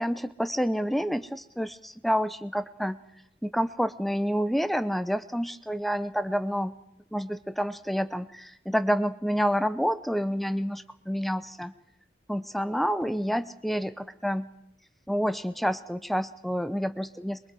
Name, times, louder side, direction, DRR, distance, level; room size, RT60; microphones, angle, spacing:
voice 1, 0.0-3.0 3.4-6.8 7.1-11.7 12.3-14.5 15.1-17.4, equal, ahead, 13 dB, 0.7 m, -28 dB
23.5 x 22.5 x 4.9 m, 0.81 s
head